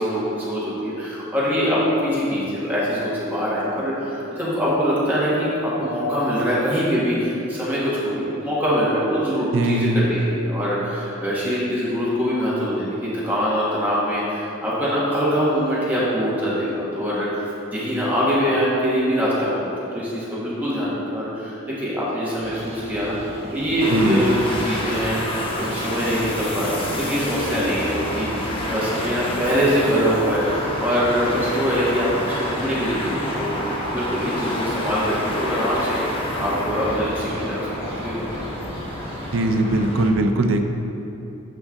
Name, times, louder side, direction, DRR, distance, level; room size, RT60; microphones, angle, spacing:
voice 1, 0.0-38.3, equal, 10° right, -9 dB, 1.5 m, -23 dB
voice 2, 9.5-10.0 23.9-24.3 39.3-40.6, right 2 dB, 90° right, 5 dB, 0.5 m, -20 dB
sound 1, 22.4-39.5, right 1 dB, 30° right, 1.1 m, -38 dB
sound 2, 23.8-40.1, left 1 dB, 30° left, 0.8 m, -29 dB
7.6 x 5.2 x 3.7 m, 2.9 s
head